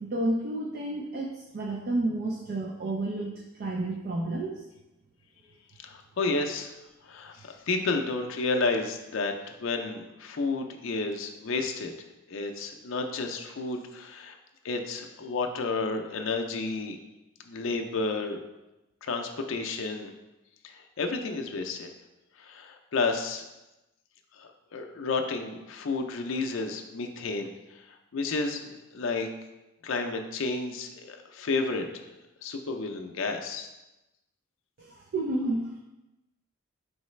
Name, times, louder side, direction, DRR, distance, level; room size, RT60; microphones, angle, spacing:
voice 1, 0.0-3.3 3.6-4.6 34.8-35.8, right 2 dB, 45° right, 1 dB, 0.4 m, -30 dB
voice 2, 5.8-6.7 7.0-11.9 12.3-14.4 14.6-17.0 17.4-18.4 19.0-20.1 20.6-21.9 22.4-23.4 24.4-29.3 29.8-31.9 32.4-33.7, left 3 dB, 65° left, 4 dB, 0.5 m, -31 dB
4.7 x 3.2 x 3.1 m, 1.0 s
head